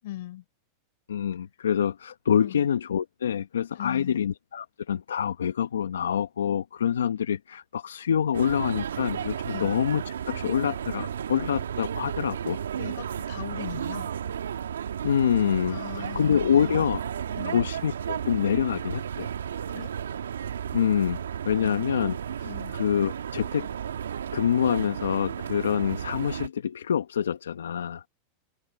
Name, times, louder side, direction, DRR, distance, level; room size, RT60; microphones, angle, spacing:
voice 1, 0.0-0.4 2.4-2.7 3.7-4.3 9.5-9.8 12.8-14.1 15.7-16.9 17.3-17.7 19.7-19.9 21.5-21.8 22.4-22.8, left 15 dB, 70° left, 4.8 m, -40 dB
voice 2, 1.1-12.6 15.0-17.0 17.5-19.3 20.7-23.7 24.3-28.0, left 8 dB, 85° left, 1.1 m, -26 dB
sound 1, 8.3-26.5, right 8 dB, 85° right, 1.5 m, -33 dB
hypercardioid pair, 100°, 0 cm